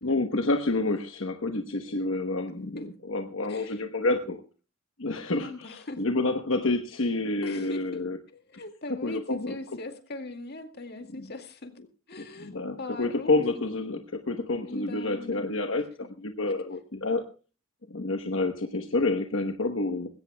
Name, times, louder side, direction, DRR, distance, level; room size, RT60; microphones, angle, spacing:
voice 1, 0.0-4.4 5.0-8.2 9.0-9.6 11.1-11.3 12.2-17.2 17.9-20.1, left 2 dB, 75° left, 6 dB, 1.1 m, -29 dB
voice 2, 3.4-3.9 5.3-6.0 7.4-11.7 12.1-12.5 12.8-13.4 14.6-15.5, left 2 dB, 55° left, 7 dB, 2.1 m, -40 dB
20.0 x 17.0 x 2.3 m, 0.35 s
head